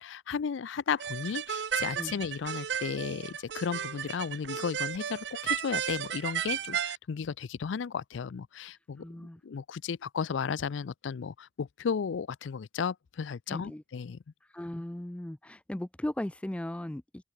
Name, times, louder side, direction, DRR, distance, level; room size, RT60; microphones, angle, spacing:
voice 1, 0.0-9.0 9.4-14.2, left 6 dB, 80° left, 0.4 m, -34 dB
sound 1, 1.0-7.0, right 8 dB, 65° right, 0.6 m, -34 dB
voice 2, 9.0-9.4 13.5-13.8 14.5-17.2, left 1 dB, 5° left, 0.3 m, -37 dB
open air
head